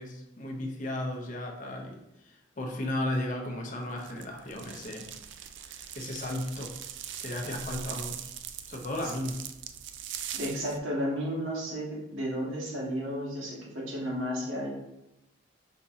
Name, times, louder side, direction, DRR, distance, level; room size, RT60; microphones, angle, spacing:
voice 1, 0.0-2.0 2.3-5.1 5.6-6.7 7.2-8.3 8.7-9.4, left 1 dB, 40° left, 1 dB, 0.7 m, -35 dB
sound 1, 4.0-10.8, right 9 dB, 65° right, 0.3 m, -41 dB
voice 2, 10.3-14.8, equal, 85° right, -5 dB, 1.6 m, -33 dB
5.2 x 2.8 x 3.6 m, 0.90 s
head